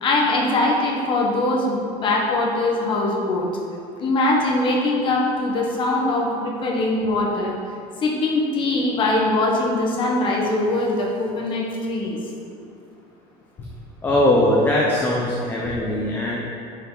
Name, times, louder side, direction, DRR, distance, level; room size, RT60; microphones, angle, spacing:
voice 1, 0.0-3.5 4.0-7.5 8.0-12.2, left 2 dB, 30° left, -2 dB, 1.4 m, -22 dB
voice 2, 14.0-16.4, left 1 dB, 10° left, -4 dB, 0.7 m, -20 dB
10.0 x 5.8 x 4.0 m, 2.4 s
cardioid pair, 170°, 17 cm